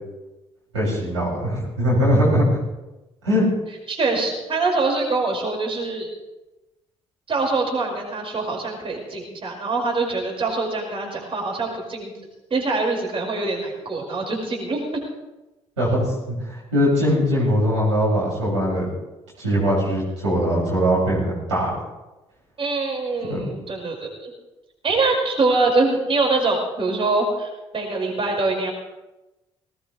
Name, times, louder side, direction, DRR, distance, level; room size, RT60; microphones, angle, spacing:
voice 1, 0.7-2.6 3.2-3.4 15.8-16.0 16.4-18.9 19.4-21.7 23.3-23.4, equal, 85° right, -7 dB, 6.9 m, -21 dB
voice 2, 3.9-6.1 7.3-12.1 12.5-15.0 22.6-24.3 24.8-28.7, right 3 dB, 40° right, -1 dB, 5.6 m, -24 dB
20.0 x 19.5 x 3.4 m, 1.0 s
figure-of-eight pair, 45°, 15 cm